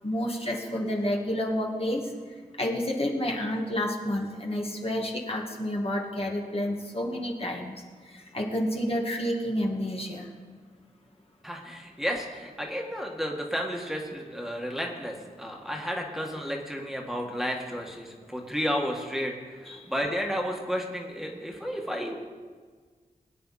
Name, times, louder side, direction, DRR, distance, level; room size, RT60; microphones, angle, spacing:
voice 1, 0.0-2.0 2.6-7.8 8.1-10.3 19.7-19.8, equal, 40° left, -1 dB, 1.9 m, -29 dB
voice 2, 11.4-22.1, equal, ahead, 0 dB, 1.8 m, -32 dB
21.5 x 9.2 x 4.2 m, 1.6 s
wide cardioid pair, 75°, 15 cm